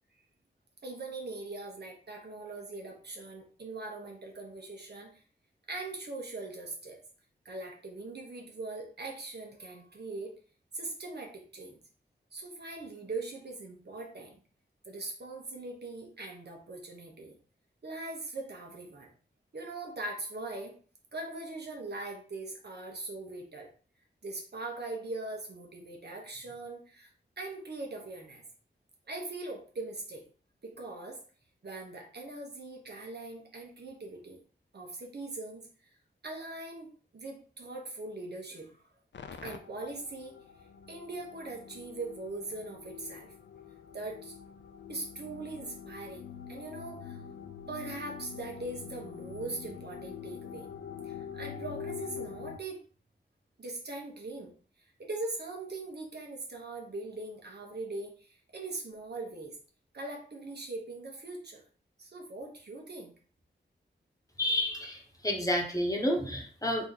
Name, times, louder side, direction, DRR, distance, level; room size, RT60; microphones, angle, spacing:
voice 1, 0.8-5.1 5.7-7.0 7.4-10.3 10.7-11.8 12.3-14.4 14.8-17.4 17.8-19.1 19.5-20.7 21.1-23.7 24.2-27.1 27.4-28.4 29.1-30.2 30.6-31.2 31.6-34.4 34.7-35.6 36.2-38.8 39.4-40.3 40.9-43.3 43.9-44.3 44.9-47.2 47.7-50.7 51.1-52.8 53.6-54.5 55.0-59.6 59.9-61.6 62.0-63.1, right 2 dB, 60° right, 0 dB, 1.3 m, -41 dB
sound 1, 39.1-52.6, left 7 dB, 75° left, 0.4 m, -45 dB
voice 2, 64.4-66.9, left 1 dB, 20° left, 0 dB, 1.2 m, -30 dB
4.0 x 3.0 x 4.1 m, 0.41 s
wide cardioid pair, 75°, 19 cm